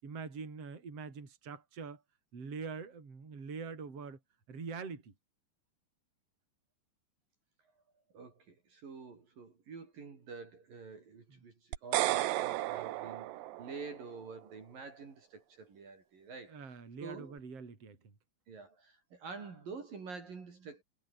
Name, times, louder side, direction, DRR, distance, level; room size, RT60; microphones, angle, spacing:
voice 1, 0.0-2.0 2.3-4.2 4.5-5.1 16.5-18.1, right 5 dB, 30° right, 5.4 m, -44 dB
voice 2, 8.1-17.4 18.5-20.8, right 4 dB, 50° right, 5.8 m, -48 dB
sound 1, 11.7-14.0, right 16 dB, 75° right, 3.0 m, -33 dB
omnidirectional pair, 5.4 m